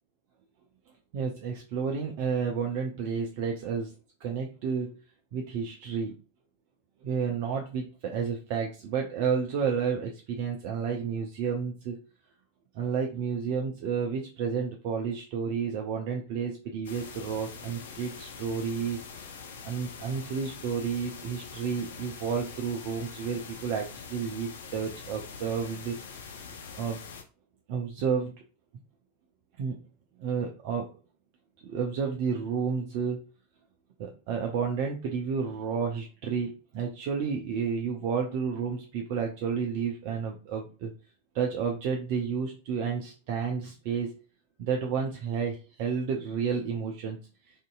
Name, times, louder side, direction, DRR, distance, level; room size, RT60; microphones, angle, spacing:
voice 1, 1.1-3.9 4.2-4.9 5.3-6.1 7.0-12.0 12.7-19.0 19.6-26.0 26.8-27.0 27.7-28.3 29.6-29.8 30.2-30.9 31.6-33.2 34.0-40.9 41.3-44.1 44.6-47.2, right 6 dB, 45° right, 1 dB, 0.5 m, -31 dB
sound 1, 16.8-27.2, left 5 dB, 60° left, 0.5 m, -44 dB
3.5 x 2.6 x 2.4 m, 0.35 s
figure-of-eight pair, 90°, 0 cm